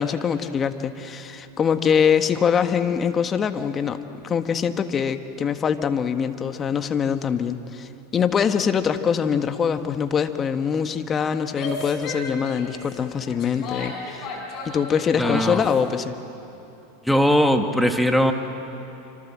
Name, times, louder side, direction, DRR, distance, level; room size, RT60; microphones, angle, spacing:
voice 1, 0.0-4.0 4.2-14.3 14.6-16.1, left 7 dB, 30° left, 9 dB, 1.5 m, -23 dB
Female speech woman speaking / Yell, 11.4-15.8, left 3 dB, 45° left, 5.7 m, -34 dB
voice 2, 15.2-15.6 17.0-18.3, equal, ahead, 5 dB, 2.0 m, -19 dB
26.5 x 26.0 x 7.6 m, 3.0 s
hypercardioid pair, 100°, 0 cm